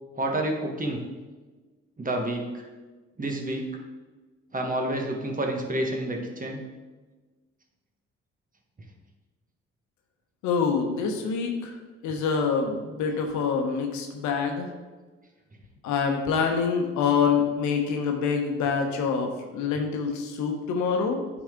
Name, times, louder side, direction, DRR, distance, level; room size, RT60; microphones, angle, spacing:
voice 1, 0.2-1.0 2.0-2.5 3.2-3.7 4.5-6.6, right 1 dB, 30° right, 2 dB, 1.4 m, -29 dB
voice 2, 10.4-11.8 12.0-14.7 15.8-21.2, left 5 dB, 75° left, 3 dB, 1.0 m, -26 dB
8.7 x 4.1 x 3.7 m, 1.3 s
hypercardioid pair, 55°, 29 cm